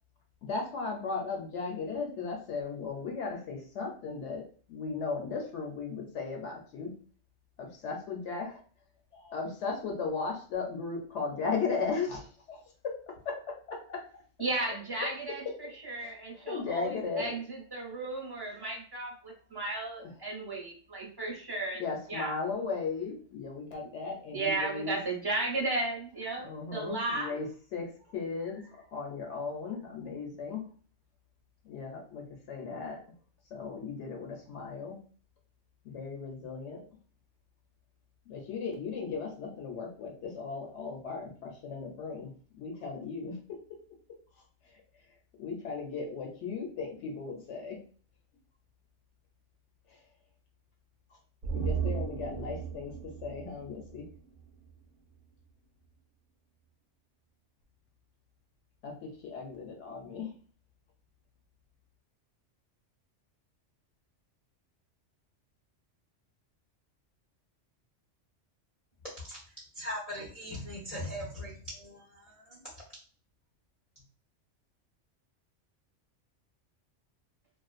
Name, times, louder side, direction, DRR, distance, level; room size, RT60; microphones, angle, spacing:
voice 1, 0.4-4.4 4.7-6.9 7.8-8.6 9.1-13.0 13.2-13.4 13.7-14.0 15.0-15.1 16.0-17.4 20.0-20.1 21.8-25.0 26.4-27.5 27.7-28.6 28.9-30.6 31.6-33.0 33.5-35.0 35.8-36.8 38.3-43.6 44.7-44.8 45.4-47.8 49.9-50.0 51.5-52.9 53.2-54.1 58.8-60.3, left 4 dB, 75° left, 0 dB, 0.9 m, -36 dB
voice 2, 14.4-15.4 15.8-21.8 22.1-22.4 24.3-27.4, right 2 dB, 25° right, -2 dB, 0.6 m, -34 dB
sound 1, 51.4-54.8 55.1-55.2, right 6 dB, 60° right, 0.7 m, -36 dB
voice 3, 69.7-72.6, equal, 40° left, -5 dB, 0.6 m, -40 dB
2.5 x 2.2 x 2.3 m, 0.42 s
omnidirectional pair, 1.3 m